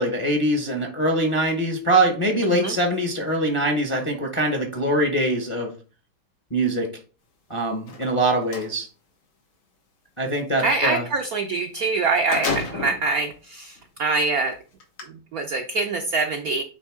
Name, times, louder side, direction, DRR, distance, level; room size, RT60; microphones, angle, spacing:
voice 1, 0.0-5.7 6.5-6.9 7.5-8.9 10.2-11.0, right 1 dB, 25° left, 2 dB, 0.6 m, -23 dB
voice 2, 2.4-2.7 10.6-14.6 15.1-16.6, right 3 dB, 70° right, 4 dB, 0.8 m, -24 dB
sound 1, 7.8-8.7 11.6-11.7 12.0-13.1 13.8-13.9 14.8-15.0, left 4 dB, 85° left, 2.4 m, -30 dB
9.1 x 3.4 x 3.6 m, 0.37 s
omnidirectional pair, 2.2 m